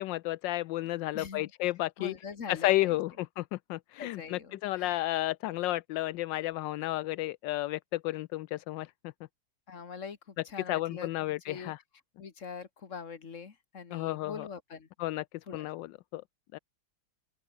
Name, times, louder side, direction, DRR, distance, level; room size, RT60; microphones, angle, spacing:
voice 1, 0.0-2.1 2.5-8.9 10.7-11.8 13.9-14.5 15.0-15.2 15.5-16.2 16.5-16.6, left 16 dB, 75° left, 1.0 m, -32 dB
voice 2, 1.1-1.5 2.0-3.0 4.0-5.0 9.7-11.7 12.2-14.9 15.5-15.7, left 6 dB, 35° left, 2.0 m, -43 dB
open air
omnidirectional pair, 2.4 m